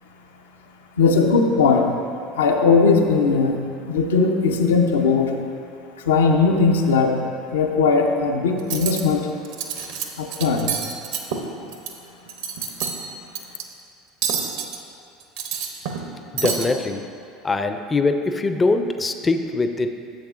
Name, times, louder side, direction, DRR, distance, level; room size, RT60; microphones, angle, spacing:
voice 1, 1.0-1.9 2.4-3.6 3.8-5.3 6.1-7.2 7.5-9.3 10.2-10.7, left 4 dB, 80° left, 4 dB, 0.5 m, -18 dB
Cutlery silverware, 8.6-9.0 9.4-10.0 10.3-11.9 12.3-13.0 13.3-13.6 14.2-14.8 15.2-16.1 16.4-16.7, right 7 dB, 70° right, 0.7 m, -27 dB
voice 2, 16.3-17.2 17.4-19.9, left 3 dB, 20° left, 8 dB, 0.4 m, -22 dB
10.5 x 7.3 x 2.5 m, 2.5 s
hypercardioid pair, 75°, 0 cm